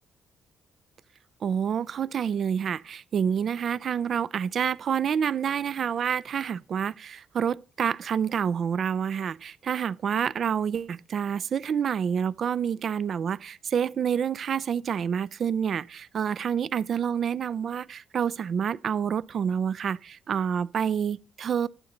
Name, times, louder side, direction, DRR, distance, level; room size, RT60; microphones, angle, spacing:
voice 1, 1.4-21.7, right 7 dB, 55° right, 0.4 m, -28 dB
11.5 x 3.9 x 7.8 m
cardioid pair, 90°, 0 cm